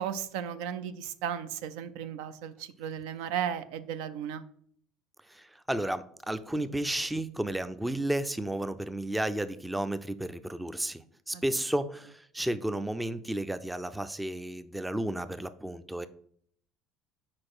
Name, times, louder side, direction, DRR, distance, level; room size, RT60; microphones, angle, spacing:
voice 1, 0.0-4.4 11.3-11.4, right 9 dB, 80° right, 12 dB, 0.4 m, -35 dB
voice 2, 5.3-16.1, right 1 dB, 10° right, 13 dB, 0.4 m, -32 dB
4.7 x 4.3 x 4.8 m, 0.62 s
supercardioid pair, 85°, 0 cm